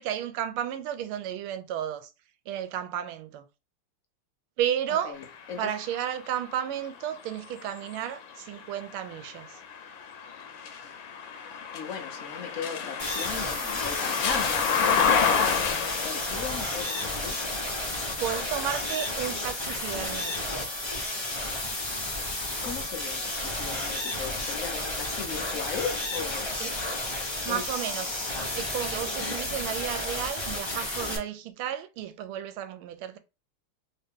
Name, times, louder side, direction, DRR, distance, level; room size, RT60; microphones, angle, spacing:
voice 1, 0.0-2.1 2.5-3.5 4.6-5.2 5.6-9.6 18.2-20.7 26.6-26.7 27.4-28.2 28.5-33.2, right 10 dB, 80° right, 1.4 m, -33 dB
voice 2, 5.0-5.7 11.7-17.4 22.6-26.6 27.5-27.7, left 6 dB, 90° left, 0.7 m, -37 dB
doppler coche, 5.2-21.1 21.7-22.9, left 6 dB, 70° left, 1.3 m, -32 dB
sound 1, 13.0-31.2, left 1 dB, 45° left, 0.3 m, -32 dB
3.4 x 2.8 x 3.5 m
omnidirectional pair, 2.4 m